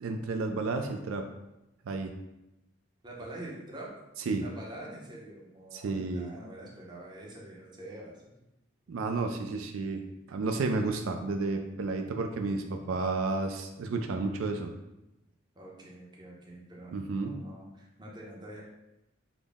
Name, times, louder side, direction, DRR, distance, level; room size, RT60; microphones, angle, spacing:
voice 1, 0.0-1.3 1.9-2.1 4.3-4.4 5.7-6.3 8.9-10.0 10.3-14.7 16.9-17.3, right 3 dB, 90° right, 5 dB, 0.4 m, -31 dB
voice 2, 3.0-4.0 4.4-8.3 8.9-9.0 15.6-17.0 17.2-18.6, right 1 dB, 20° right, -3 dB, 0.7 m, -45 dB
3.9 x 2.0 x 3.4 m, 0.92 s
head